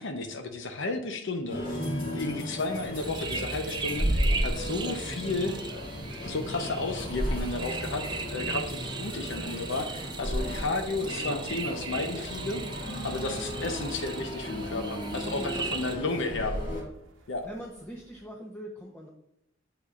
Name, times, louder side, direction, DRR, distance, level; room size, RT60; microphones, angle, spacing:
voice 1, 0.0-1.8 2.1-5.5 6.2-8.0 8.3-12.6 13.0-16.5 17.3-17.5, left 3 dB, 65° left, 6 dB, 0.8 m, -33 dB
sound 1, 1.5-16.8, equal, 40° left, 2.4 m, -34 dB
sound 2, 2.8-18.3, right 1 dB, 75° right, 0.9 m, -50 dB
sound 3, 3.0-16.0, right 4 dB, 25° right, 0.6 m, -38 dB
voice 2, 15.4-16.3 16.7-16.9 17.2-19.1, equal, 10° left, -2 dB, 0.8 m, -43 dB
8.5 x 8.1 x 2.5 m, 0.82 s
head